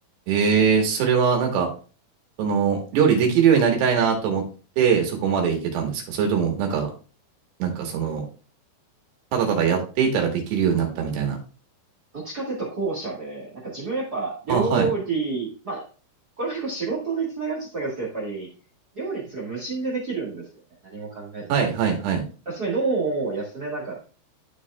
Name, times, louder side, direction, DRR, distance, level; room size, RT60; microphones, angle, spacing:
voice 1, 0.3-1.7 2.4-4.5 4.8-6.9 7.6-8.3 9.3-11.4 14.5-14.9 21.5-22.2, right 7 dB, 75° right, 1 dB, 3.7 m, -21 dB
voice 2, 12.1-15.8 16.4-18.5 18.9-20.5 20.8-21.5 22.4-24.0, right 4 dB, 55° right, -2 dB, 1.1 m, -28 dB
13.0 x 4.8 x 2.4 m, 0.36 s
omnidirectional pair, 4.9 m